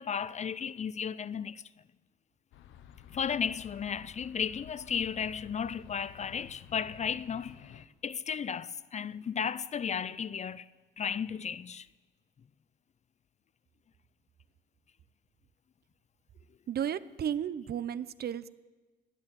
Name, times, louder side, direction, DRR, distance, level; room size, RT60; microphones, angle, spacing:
voice 1, 0.0-1.6 3.1-10.6 11.0-11.8, left 7 dB, 35° left, 0.4 m, -34 dB
sound 1, 2.5-7.9, left 9 dB, 80° left, 0.9 m, -52 dB
voice 2, 16.7-18.5, right 9 dB, 50° right, 0.6 m, -33 dB
20.0 x 8.8 x 7.6 m
cardioid pair, 90°, 20 cm